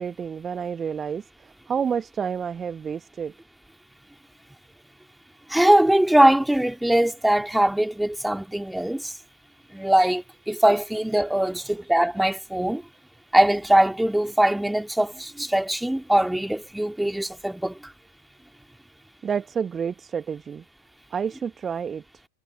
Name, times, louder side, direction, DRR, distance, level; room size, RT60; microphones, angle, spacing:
voice 1, 0.0-3.3 19.2-20.6 21.1-22.0, right 7 dB, 20° right, 1.5 m, -29 dB
voice 2, 5.5-9.1 9.7-12.8 13.3-17.9, right 1 dB, 5° right, 2.5 m, -21 dB
figure-of-eight pair, 90°, 0 cm